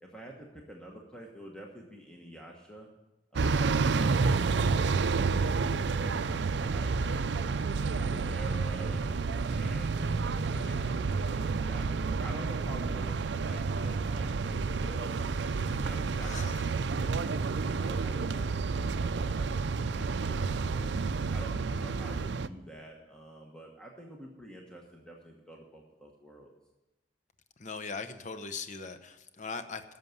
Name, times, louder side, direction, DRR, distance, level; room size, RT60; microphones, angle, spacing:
voice 1, 0.0-2.9 6.6-10.2 10.5-15.2 15.7-16.3 16.9-20.9 21.3-26.5, right 1 dB, 5° left, -1 dB, 1.2 m, -48 dB
sound 1, 3.4-22.5, right 4 dB, 65° right, 0.5 m, -30 dB
voice 2, 16.2-16.7 27.6-29.8, left 4 dB, 45° left, 8 dB, 0.8 m, -40 dB
11.0 x 6.9 x 9.4 m, 1.0 s
head